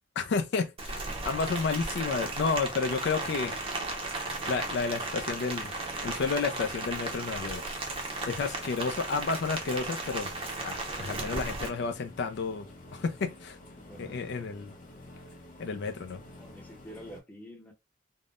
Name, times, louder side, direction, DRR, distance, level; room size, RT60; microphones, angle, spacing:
voice 1, 0.2-3.6 4.4-5.7 6.0-7.6 8.3-10.3 10.6-12.7 12.9-13.6 14.0-14.8 15.6-16.2, left 4 dB, 60° left, 0.4 m, -31 dB
Rain, 0.8-11.7, right 2 dB, 30° right, 0.6 m, -35 dB
sound 1, 1.6-17.2, left 1 dB, 40° left, 0.7 m, -50 dB
voice 2, 13.8-14.4 15.0-15.1 16.4-17.7, equal, 10° left, 0.7 m, -48 dB
3.5 x 2.1 x 2.4 m
head